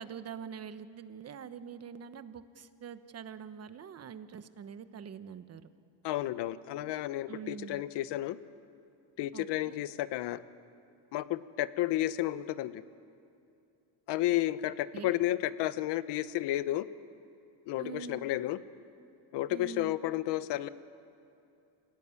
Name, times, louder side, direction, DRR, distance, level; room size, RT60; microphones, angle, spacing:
voice 1, 0.0-5.6 7.3-7.8 9.3-9.8 14.9-15.2 17.8-18.3 19.5-20.0, right 7 dB, 35° right, 11 dB, 1.2 m, -44 dB
voice 2, 6.0-8.4 9.2-10.4 11.1-12.8 14.1-16.9 17.7-18.6 19.3-20.7, left 15 dB, 65° left, 14 dB, 1.1 m, -32 dB
27.0 x 17.0 x 9.8 m, 2.6 s
cardioid pair, 135°, 44 cm